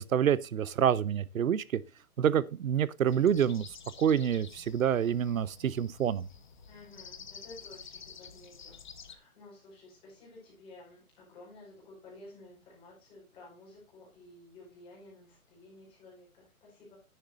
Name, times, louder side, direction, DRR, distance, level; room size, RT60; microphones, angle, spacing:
voice 1, 0.0-1.8 2.2-6.2, right 9 dB, 65° right, 0.8 m, -27 dB
sound 1, 3.1-9.2, left 6 dB, 35° left, 0.9 m, -50 dB
voice 2, 6.7-8.8 9.1-17.0, left 2 dB, 10° left, 4.9 m, -53 dB
10.5 x 10.0 x 2.5 m
hypercardioid pair, 170°, 43 cm